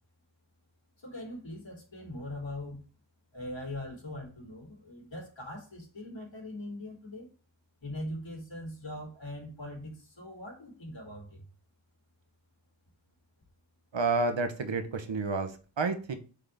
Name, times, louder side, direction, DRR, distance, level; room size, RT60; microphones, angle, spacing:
voice 1, 1.0-2.8 3.3-7.3 7.8-11.4, left 1 dB, 75° left, -3 dB, 3.4 m, -41 dB
voice 2, 13.9-15.5 15.8-16.2, right 3 dB, 70° right, 8 dB, 1.0 m, -29 dB
8.1 x 3.7 x 3.5 m, 0.37 s
wide cardioid pair, 65°, 46 cm